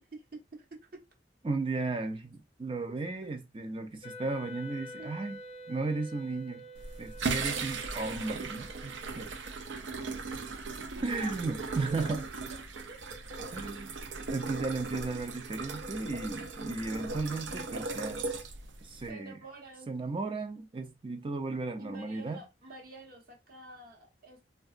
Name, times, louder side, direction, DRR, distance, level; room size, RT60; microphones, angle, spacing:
voice 1, 0.1-0.7 0.9-1.0 3.2-3.4 5.0-5.1 11.1-12.1 12.9-13.4 17.5-17.9 19.1-19.9 21.8-24.5, right 2 dB, 55° right, 0.9 m, -48 dB
voice 2, 1.4-5.4 5.7-6.7 7.0-9.3 11.0-12.2 13.5-13.9 14.3-18.3 18.8-19.4 19.9-22.4, right 3 dB, 30° right, 0.5 m, -35 dB
Wind instrument woodwind instrument, 4.0-9.2, equal, 35° left, 0.4 m, -47 dB
sound 1, 6.7-19.1, right 4 dB, 85° right, 0.5 m, -38 dB
3.5 x 2.2 x 2.4 m
head